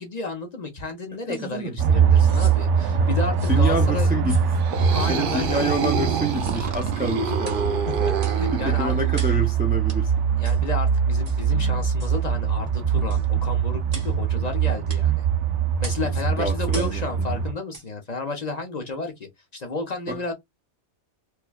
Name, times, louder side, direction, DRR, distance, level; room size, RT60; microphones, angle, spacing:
voice 1, 0.0-4.1 4.9-5.7 7.9-8.9 10.4-15.2 15.8-20.3, left 3 dB, 40° left, 0.7 m, -32 dB
voice 2, 1.3-1.8 3.0-3.1 3.5-4.4 4.9-7.8 8.5-10.2 16.0-17.4 20.1-20.2, right 1 dB, 15° right, 0.4 m, -28 dB
sound 1, 1.3-1.5 2.1-2.6 3.4-3.6 4.3-4.5 5.2-5.4 6.3-6.6 7.4-7.7 8.2-8.4 9.1-9.4 9.9-10.0 10.4-10.6 11.2-11.4 12.0-12.2 13.1-13.3 13.9-14.2 14.9-15.1 15.8-16.1 16.7-17.0 17.7-17.9 18.4-18.5, right 2 dB, 35° right, 1.0 m, -40 dB
sound 2, 1.8-17.5, right 7 dB, 85° right, 1.0 m, -23 dB
sound 3, 4.5-9.4, right 5 dB, 55° right, 0.7 m, -28 dB
4.5 x 2.2 x 2.3 m
omnidirectional pair, 1.2 m